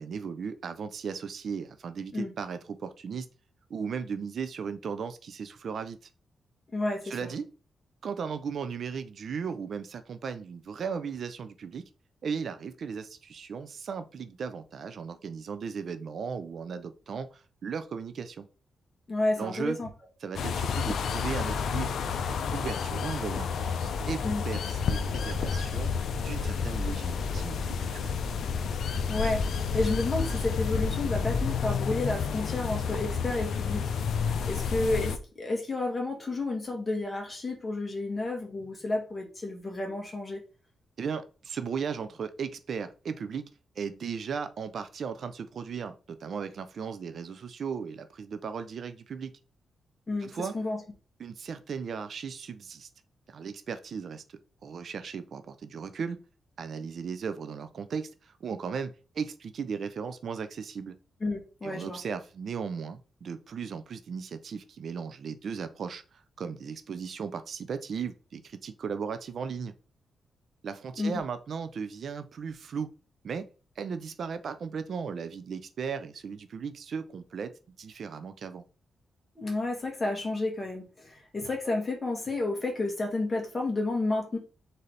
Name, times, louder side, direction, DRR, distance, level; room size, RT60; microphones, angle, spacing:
voice 1, 0.0-3.3 3.7-6.0 7.0-7.5 8.0-11.8 12.2-18.5 19.4-19.8 20.2-25.9 26.2-28.2 41.0-43.5 43.8-49.3 50.2-50.6 51.2-52.9 53.3-54.2 54.6-56.2 56.6-61.0 61.6-69.7 70.6-72.9 73.2-73.5 73.8-77.5 77.8-78.6, right 6 dB, 65° right, 11 dB, 0.5 m, -36 dB
voice 2, 6.7-7.2 19.1-19.9 24.2-24.4 29.1-33.9 34.2-40.4 50.1-50.8 61.2-62.0 71.0-71.2 79.4-84.4, left 2 dB, 30° left, 1 dB, 1.8 m, -31 dB
sound 1, 20.3-35.2, left 6 dB, 75° left, 0.5 m, -30 dB
4.0 x 4.0 x 3.3 m, 0.34 s
cardioid pair, 90°, 0 cm